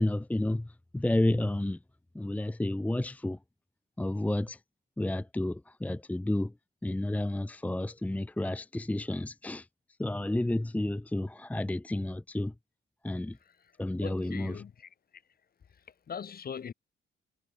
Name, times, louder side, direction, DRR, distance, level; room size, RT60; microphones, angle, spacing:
voice 1, 0.0-1.8 2.1-3.4 4.0-4.6 5.0-6.5 6.8-9.7 10.0-12.5 13.0-13.4 13.8-14.6, left 1 dB, 5° left, 0.8 m, -31 dB
voice 2, 14.0-14.9 16.1-16.7, left 7 dB, 50° left, 6.1 m, -40 dB
cardioid pair, 90°, 20 cm